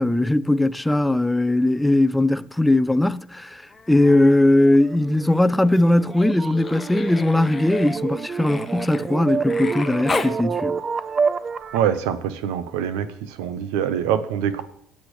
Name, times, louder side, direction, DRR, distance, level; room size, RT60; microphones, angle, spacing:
voice 1, 0.0-10.8, left 1 dB, 5° left, 0.5 m, -19 dB
Human voice, 3.7-4.5 4.8-10.4 12.0-12.1, left 4 dB, 25° left, 1.0 m, -35 dB
sound 1, 4.6-12.0, right 5 dB, 45° right, 0.6 m, -28 dB
voice 2, 11.7-13.1 13.4-14.6, right 9 dB, 90° right, 0.8 m, -24 dB
21.0 x 8.5 x 3.2 m
supercardioid pair, 80°, 0 cm